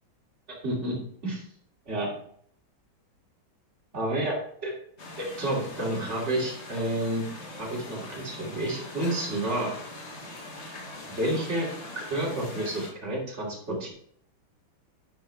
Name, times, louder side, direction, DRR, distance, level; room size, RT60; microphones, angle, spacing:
voice 1, 0.6-1.0 1.2-1.4 1.9-2.1 3.9-4.7 5.2-7.2 7.6-9.7 11.2-11.7 11.9-13.9, right 1 dB, 30° right, -4 dB, 3.0 m, -30 dB
sound 1, 5.0-12.9, left 2 dB, 35° left, 1.5 m, -42 dB
10.5 x 6.5 x 3.5 m, 0.63 s
omnidirectional pair, 2.3 m